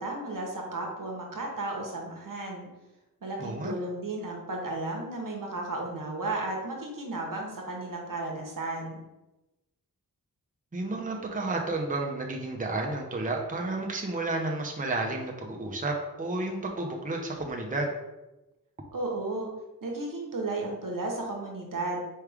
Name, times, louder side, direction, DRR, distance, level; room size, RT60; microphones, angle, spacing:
voice 1, 0.0-2.7 3.2-9.0 18.9-19.5 19.8-22.1, right 2 dB, 65° right, 0 dB, 1.0 m, -34 dB
voice 2, 3.4-3.7 10.7-17.9, right 2 dB, 25° right, 0 dB, 0.7 m, -31 dB
4.7 x 3.3 x 3.4 m, 1.0 s
wide cardioid pair, 65°, 35 cm